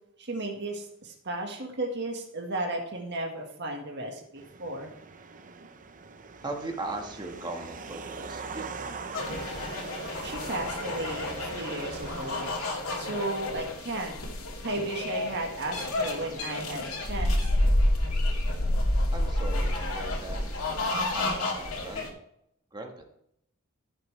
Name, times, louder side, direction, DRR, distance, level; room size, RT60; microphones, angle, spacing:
voice 1, 0.2-4.9 10.2-12.5 12.9-14.2 14.6-17.4, right 2 dB, 55° right, 1 dB, 1.7 m, -34 dB
sound 1, 4.4-12.5, right 4 dB, 40° right, 0.7 m, -42 dB
voice 2, 6.4-8.7 19.1-20.4 21.1-22.1 22.7-23.1, right 2 dB, 20° right, 3 dB, 1.5 m, -38 dB
sound 2, 9.1-22.1, left 1 dB, 80° left, 2.3 m, -29 dB
14.5 x 6.9 x 3.3 m, 0.75 s
head